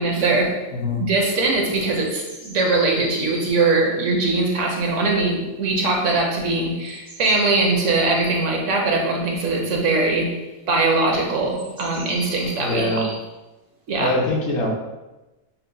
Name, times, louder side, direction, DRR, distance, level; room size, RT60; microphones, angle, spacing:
voice 1, 0.0-0.6 1.0-10.3 10.7-13.1 13.9-14.1, right 3 dB, 70° right, 0 dB, 1.0 m, -21 dB
voice 2, 0.7-1.0 12.6-13.1 14.0-14.7, left 1 dB, 60° left, -1 dB, 0.9 m, -23 dB
sound 1, 2.0-5.1 6.8-8.5 10.8-11.0 11.4-13.2, left 1 dB, 25° right, 0.4 m, -39 dB
5.6 x 2.1 x 2.5 m, 1.1 s
omnidirectional pair, 1.4 m